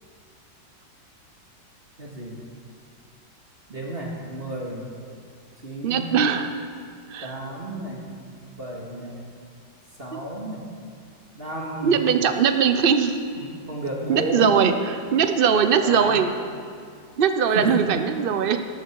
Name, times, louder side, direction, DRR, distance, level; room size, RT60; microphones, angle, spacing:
voice 1, 2.0-2.4 3.7-4.9 5.6-6.2 7.2-8.0 8.4-9.2 10.0-10.7 11.3-11.9 13.4-14.5 15.8-16.2 17.6-17.9, right 1 dB, 30° right, -2 dB, 2.3 m, -32 dB
voice 2, 5.8-6.5 7.1-7.4 10.1-10.2 11.8-13.2 14.1-16.3 17.2-18.6, right 7 dB, 90° right, 8 dB, 0.4 m, -21 dB
19.0 x 13.5 x 4.7 m, 2.3 s
omnidirectional pair, 2.1 m